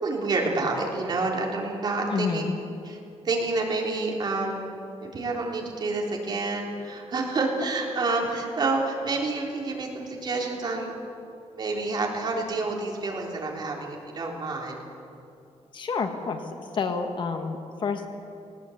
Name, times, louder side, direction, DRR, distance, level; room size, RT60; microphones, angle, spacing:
voice 1, 0.0-2.4 2.8-3.0 3.2-4.6 5.0-10.9 11.5-14.8, right 3 dB, 40° right, -1 dB, 3.6 m, -28 dB
voice 2, 2.1-2.6 15.7-16.4 16.8-18.1, left 5 dB, 45° left, 5 dB, 1.6 m, -28 dB
18.5 x 18.5 x 8.5 m, 2.6 s
wide cardioid pair, 165°, 11 cm